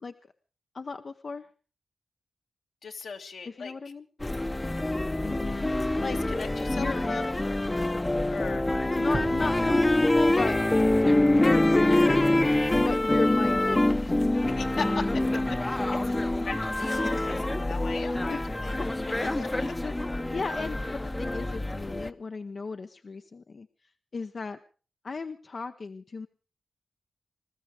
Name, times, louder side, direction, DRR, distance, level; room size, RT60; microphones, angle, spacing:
voice 1, 0.7-1.5 3.4-4.1 5.2-6.2 6.7-7.1 9.0-10.6 11.3-12.2 12.8-14.2 18.3-18.9 19.8-19.9 20.3-23.7 24.1-24.6 25.0-26.3, left 4 dB, 55° left, 7 dB, 0.8 m, -35 dB
voice 2, 2.8-3.7 6.4-7.3 8.3-8.7 14.5-16.2 16.4-18.7 19.1-19.7, left 5 dB, 80° left, 3 dB, 2.0 m, -38 dB
sound 1, 4.2-22.1, left 1 dB, 20° left, 0.8 m, -25 dB
sound 2, 9.1-11.6, right 3 dB, 35° right, 0.7 m, -39 dB
21.0 x 13.5 x 4.9 m, 0.40 s
cardioid pair, 55°, 0 cm